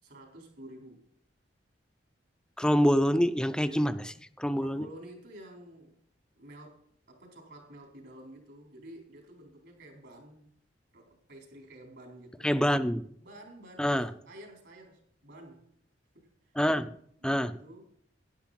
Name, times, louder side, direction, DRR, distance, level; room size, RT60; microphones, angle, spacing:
voice 1, 0.0-1.1 3.7-3.9 4.6-6.0 6.4-10.5 10.9-12.8 13.2-15.7 16.1-16.5 16.8-16.9 17.2-17.8, right 1 dB, 65° right, 1 dB, 4.2 m, -51 dB
voice 2, 2.6-4.0 4.4-4.9 12.4-13.0 13.8-14.1 16.6-16.9 17.2-17.5, equal, 5° left, 12 dB, 0.5 m, -26 dB
11.5 x 11.0 x 4.2 m, 0.65 s
head